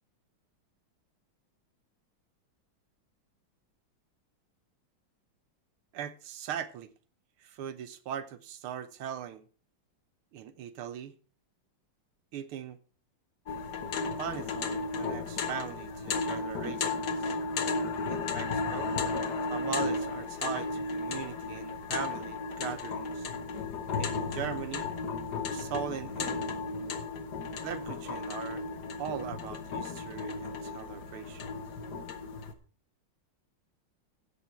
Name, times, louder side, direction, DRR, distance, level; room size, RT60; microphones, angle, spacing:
voice 1, 5.9-6.9 7.4-9.5 10.3-11.1 12.3-12.8 14.2-17.4 18.1-19.0 19.5-23.3 24.0-24.9 25.5-26.5 27.6-28.6 29.0-31.5, right 9 dB, 85° right, 1.8 m, -40 dB
sound 1, 13.5-32.5, left 4 dB, 55° left, 1.6 m, -34 dB
16.5 x 6.8 x 4.5 m
omnidirectional pair, 2.3 m